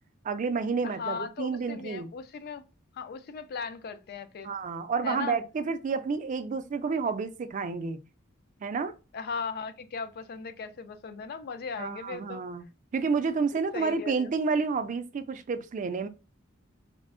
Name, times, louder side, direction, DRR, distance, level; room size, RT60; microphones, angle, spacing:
voice 1, 0.2-2.1 4.4-8.0 8.6-9.0 11.8-12.6 12.9-16.1, right 5 dB, 40° right, 0.3 m, -30 dB
voice 2, 0.8-2.7 2.9-4.5 5.0-5.4 9.1-12.4 13.7-14.3, left 5 dB, 50° left, 0.4 m, -37 dB
4.3 x 2.0 x 2.5 m
head